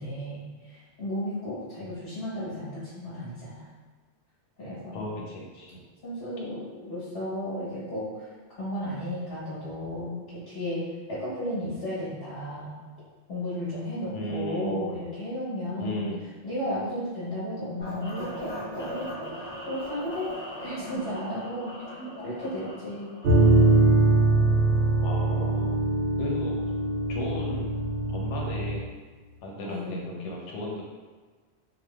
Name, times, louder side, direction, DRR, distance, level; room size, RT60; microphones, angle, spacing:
voice 1, 0.0-3.6 4.6-5.1 6.0-8.3 8.6-10.8 11.1-12.8 13.3-16.1 16.4-19.1 19.7-20.3 20.6-22.0 22.2-23.1 29.6-30.3, left 1 dB, 60° left, -10 dB, 1.3 m, -34 dB
voice 2, 4.9-5.9 14.1-14.8 15.8-16.2 22.0-22.7 23.4-23.8 24.1-24.2 25.0-25.7 26.2-26.6 27.1-27.7 28.1-28.9 29.4-30.8, equal, 90° left, -2 dB, 1.0 m, -36 dB
sound 1, 17.8-23.8, equal, 10° left, 1.0 m, -39 dB
sound 2, 23.2-28.8, right 2 dB, 60° right, 0.7 m, -22 dB
3.0 x 2.2 x 3.2 m, 1.4 s
omnidirectional pair, 1.2 m